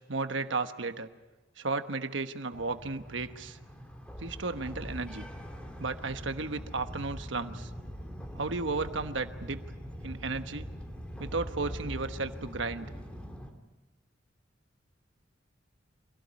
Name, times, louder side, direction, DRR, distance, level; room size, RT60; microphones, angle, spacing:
voice 1, 0.1-1.1 1.6-3.6 4.2-5.3 5.8-7.7 8.3-9.6 10.0-10.7 11.2-12.9, right 3 dB, 75° right, 9 dB, 1.2 m, -34 dB
sound 1, 2.5-13.5, equal, 5° left, 2.3 m, -43 dB
sound 2, 5.2-11.3, right 1 dB, 25° right, 1.3 m, -55 dB
26.0 x 17.0 x 9.6 m, 1.2 s
head